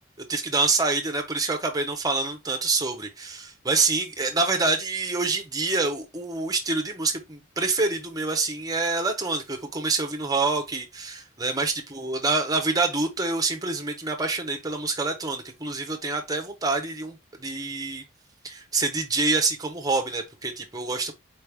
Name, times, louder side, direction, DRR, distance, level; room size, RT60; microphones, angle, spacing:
voice 1, 0.3-18.0 18.4-21.1, right 3 dB, 20° right, 1.0 m, -26 dB
4.6 x 3.2 x 3.3 m
head